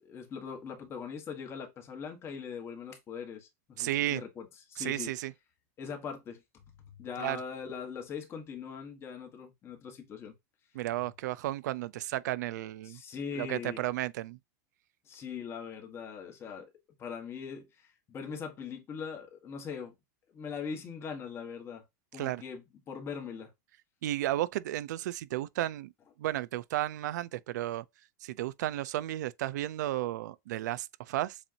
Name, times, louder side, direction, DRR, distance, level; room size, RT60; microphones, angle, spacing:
voice 1, 0.0-5.1 5.8-6.4 6.8-10.3 12.8-13.8 15.0-16.7 17.0-19.9 20.3-21.8 22.1-23.5, left 6 dB, 25° left, 1.4 m, -41 dB
voice 2, 3.8-4.2 4.8-5.3 7.2-7.4 10.7-13.0 13.4-14.4 22.1-22.4 24.0-25.9 26.2-27.8 28.2-31.4, right 14 dB, 85° right, 0.5 m, -33 dB
7.1 x 2.6 x 2.8 m
supercardioid pair, 145°, 9 cm